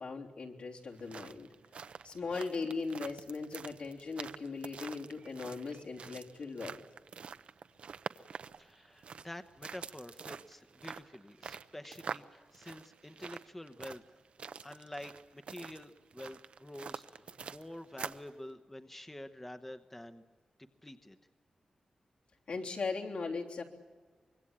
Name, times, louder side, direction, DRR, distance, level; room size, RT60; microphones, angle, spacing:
voice 1, 0.0-1.5 2.0-6.8 22.5-23.6, left 4 dB, 70° left, -1 dB, 3.5 m, -39 dB
sound 1, 0.8-18.3, right 6 dB, 70° right, 0.8 m, -46 dB
voice 2, 8.6-14.2 14.6-20.2 20.8-21.2, left 1 dB, 10° left, 8 dB, 0.9 m, -48 dB
25.0 x 22.5 x 8.8 m, 1.4 s
wide cardioid pair, 145°, 2 cm